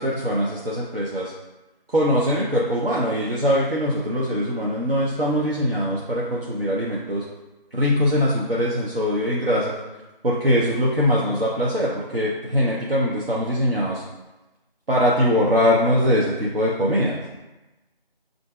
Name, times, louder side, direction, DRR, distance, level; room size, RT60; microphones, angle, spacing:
voice 1, 0.0-1.3 1.9-7.2 7.7-9.8 10.2-14.0 14.9-17.2, equal, 75° right, -5 dB, 0.8 m, -22 dB
5.6 x 2.6 x 2.3 m, 1.1 s
figure-of-eight pair, 175°, 29 cm